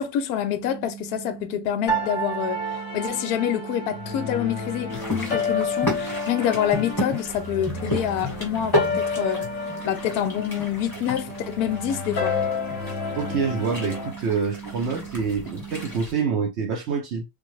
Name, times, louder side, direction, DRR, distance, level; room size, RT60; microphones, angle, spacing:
voice 1, 0.0-2.6 2.9-9.5 9.8-12.4, left 10 dB, 70° left, 1.0 m, -27 dB
sound 1, 0.6-16.0, right 9 dB, 80° right, 1.2 m, -40 dB
sound 2, 1.9-14.1, left 3 dB, 50° left, 1.0 m, -30 dB
sound 3, 4.9-16.1, left 1 dB, 15° left, 1.3 m, -33 dB
voice 2, 13.2-17.2, right 5 dB, 65° right, 0.6 m, -26 dB
3.3 x 2.3 x 3.0 m
omnidirectional pair, 1.9 m